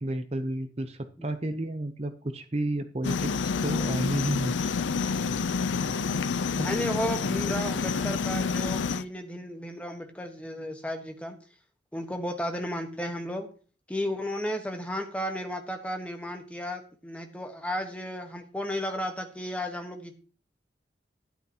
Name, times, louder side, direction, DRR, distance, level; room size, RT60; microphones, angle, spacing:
voice 1, 0.0-4.7, right 1 dB, 35° right, 8 dB, 0.7 m, -31 dB
sound 1, 3.0-9.0, left 5 dB, 85° left, 0.5 m, -28 dB
voice 2, 6.5-11.4 11.9-13.5 13.9-20.2, equal, 5° left, 5 dB, 1.3 m, -33 dB
12.5 x 10.5 x 2.9 m, 0.39 s
head